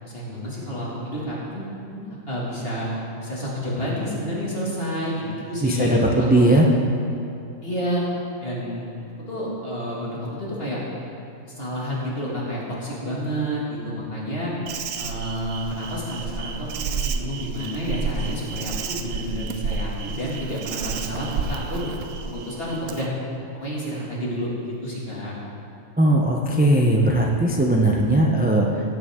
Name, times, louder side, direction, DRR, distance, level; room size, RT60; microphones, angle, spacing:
voice 1, 0.0-2.9 3.2-6.5 7.6-8.0 8.4-8.9 9.3-10.8 11.4-14.5 14.9-21.9 22.2-23.1 23.5-25.3, equal, 40° left, -6 dB, 2.6 m, -29 dB
voice 2, 5.6-6.7 26.0-28.8, right 1 dB, 15° right, 0 dB, 0.4 m, -18 dB
Insect, 14.7-23.1, right 5 dB, 70° right, 0.9 m, -31 dB
16.5 x 9.1 x 3.7 m, 2.6 s
omnidirectional pair, 1.5 m